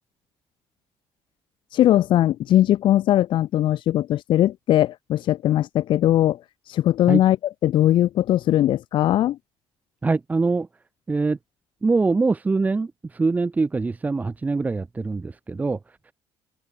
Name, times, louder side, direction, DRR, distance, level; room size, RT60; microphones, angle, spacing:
voice 1, 1.7-6.4 6.7-7.4 7.6-9.4, left 13 dB, 55° left, 1.2 m, -20 dB
voice 2, 10.0-10.7 11.1-11.4 11.8-15.8, right 3 dB, 15° right, 2.3 m, -23 dB
open air
cardioid pair, 160°, 10 cm